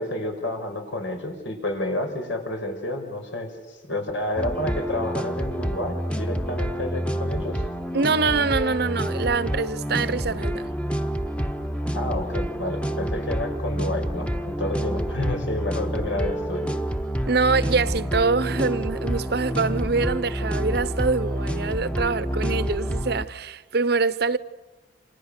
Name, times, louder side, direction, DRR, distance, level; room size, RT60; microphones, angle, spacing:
voice 1, 0.0-7.6 11.9-16.7, left 1 dB, 90° left, 5.7 m, -30 dB
sound 1, 4.4-23.3, equal, 5° left, 0.9 m, -28 dB
voice 2, 7.9-10.7 17.3-24.4, right 4 dB, 55° right, 0.8 m, -24 dB
29.0 x 27.5 x 6.7 m
head